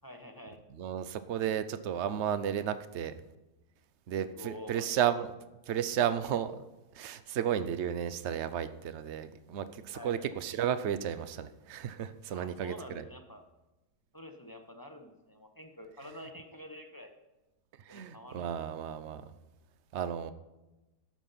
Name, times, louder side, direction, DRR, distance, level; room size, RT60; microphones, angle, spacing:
voice 1, 0.0-0.6 4.3-5.3 9.9-10.2 12.3-13.4 14.1-17.1 17.9-18.8, left 1 dB, 15° left, 4 dB, 0.9 m, -48 dB
voice 2, 0.7-3.1 4.1-5.3 5.7-6.5 6.9-13.1 17.9-19.2 19.9-20.3, right 9 dB, 60° right, 13 dB, 0.8 m, -33 dB
12.0 x 7.6 x 5.7 m, 1.1 s
omnidirectional pair, 1.8 m